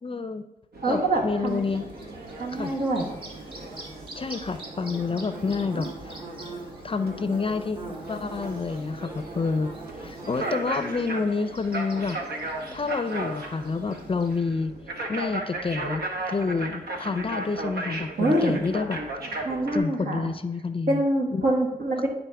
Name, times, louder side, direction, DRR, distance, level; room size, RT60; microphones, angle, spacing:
voice 1, 0.0-0.4 0.9-1.9 2.5-2.7 4.2-5.9 6.8-9.7 10.0-12.2 12.7-14.7 15.1-16.0 16.3-19.0 19.3-19.4 19.7-21.0 21.3-21.4, left 4 dB, 35° left, 10 dB, 0.5 m, -28 dB
sound 1, 0.7-19.8, right 2 dB, 90° right, 1.0 m, -36 dB
voice 2, 0.8-1.6 2.4-3.1 18.2-18.6 19.4-20.3 20.9-22.1, right 1 dB, 70° right, 1 dB, 1.4 m, -25 dB
Bird / Buzz, 1.5-14.4, right 2 dB, 35° right, 1.5 m, -43 dB
10.5 x 4.0 x 3.4 m, 0.96 s
cardioid pair, 65°, 16 cm